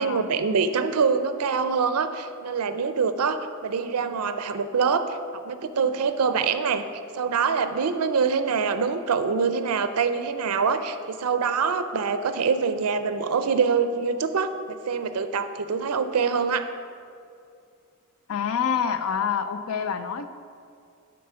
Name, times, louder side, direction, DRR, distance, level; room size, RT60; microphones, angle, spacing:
voice 1, 0.0-5.2 5.5-6.8 7.1-16.7, right 5 dB, 85° right, 10 dB, 0.5 m, -25 dB
voice 2, 18.3-20.3, left 7 dB, 70° left, 10 dB, 0.5 m, -27 dB
10.5 x 4.3 x 5.5 m, 2.4 s
head